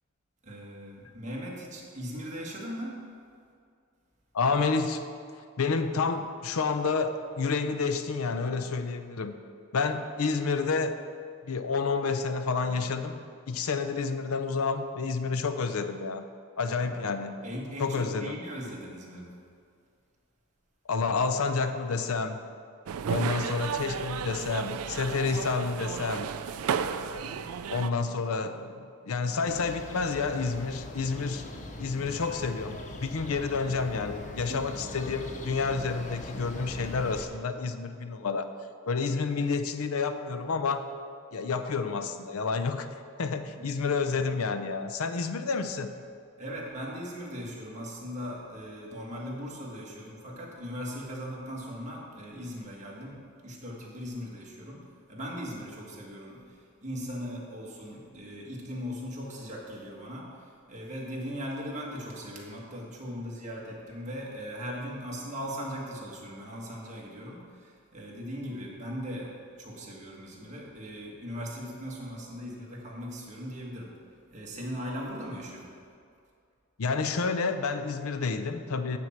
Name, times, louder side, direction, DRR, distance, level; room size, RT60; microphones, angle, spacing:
voice 1, 0.4-3.0 16.7-17.0 17.4-19.3 33.2-33.4 34.4-34.7 43.6-43.7 46.4-74.0 74.3-75.7, equal, 35° right, -4 dB, 1.8 m, -39 dB
voice 2, 4.3-5.1 5.6-9.3 9.7-11.0 11.4-16.2 16.6-17.3 17.8-18.4 20.9-22.4 23.1-26.3 27.1-31.5 31.8-38.5 38.9-40.9 41.3-42.9 43.2-45.9 76.8-79.0, left 4 dB, 70° left, 9 dB, 0.6 m, -29 dB
sound 1, 22.9-27.9, right 7 dB, 75° right, 0.4 m, -33 dB
sound 2, 29.4-37.3, left 1 dB, 35° left, 0.8 m, -41 dB
9.6 x 4.4 x 7.3 m, 2.3 s
head